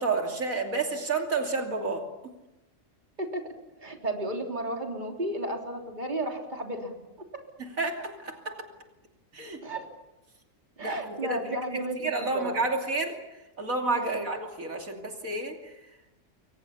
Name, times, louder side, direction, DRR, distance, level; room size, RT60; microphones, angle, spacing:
voice 1, 0.0-2.3 7.6-8.6 9.3-9.6 10.8-11.4 12.0-13.2 13.6-15.7, right 3 dB, 80° right, 2 dB, 3.3 m, -30 dB
voice 2, 3.8-7.0 9.6-9.8 10.8-12.5 13.9-14.2, right 1 dB, 35° right, 2 dB, 3.5 m, -33 dB
28.5 x 23.5 x 7.1 m, 0.98 s
omnidirectional pair, 1.4 m